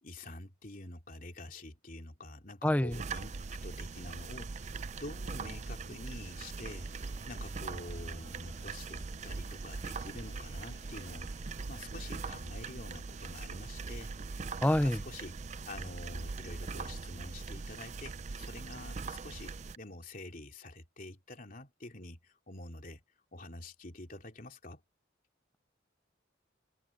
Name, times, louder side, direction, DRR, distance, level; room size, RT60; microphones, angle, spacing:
voice 1, 0.0-3.3 3.6-11.3 11.7-14.4 14.7-15.3 15.6-23.0 23.3-24.8, left 2 dB, 45° left, 3.2 m, -47 dB
voice 2, 2.6-3.0 14.6-15.0, left 1 dB, 10° left, 0.7 m, -27 dB
sound 1, 2.9-19.8, right 4 dB, 35° right, 0.5 m, -41 dB
sound 2, 6.7-11.7, left 2 dB, 25° left, 4.1 m, -62 dB
head